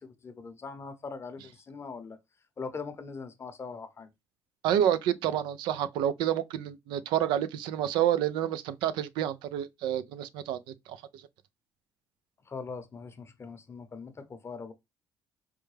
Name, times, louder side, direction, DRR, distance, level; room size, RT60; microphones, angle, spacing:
voice 1, 0.0-2.2 2.6-4.1 12.5-14.7, left 4 dB, 35° left, 0.7 m, -41 dB
voice 2, 4.6-11.3, right 10 dB, 85° right, 0.4 m, -29 dB
4.5 x 2.1 x 3.1 m
cardioid pair, 85°, 8 cm